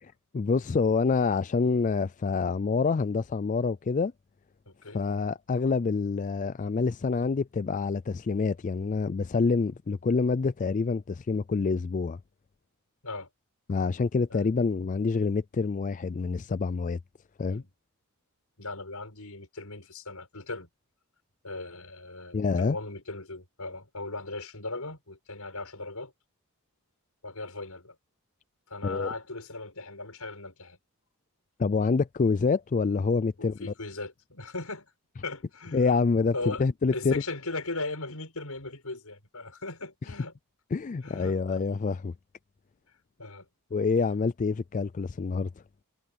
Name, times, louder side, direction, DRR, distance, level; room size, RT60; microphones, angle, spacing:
voice 1, 0.0-4.1 4.9-12.2 13.7-17.0 17.4-17.6 22.3-22.8 28.8-29.1 31.6-33.7 35.7-37.2 40.7-42.1 43.7-45.5, left 4 dB, 35° left, 0.3 m, -27 dB
voice 2, 4.7-5.0 13.0-13.3 14.3-14.4 17.5-17.6 18.6-20.7 21.4-26.1 27.2-28.0 28.7-30.8 33.4-34.9 35.2-35.9 36.3-36.6 36.9-40.3 41.0-41.6 43.2-43.5, left 2 dB, 80° left, 6.3 m, -38 dB
head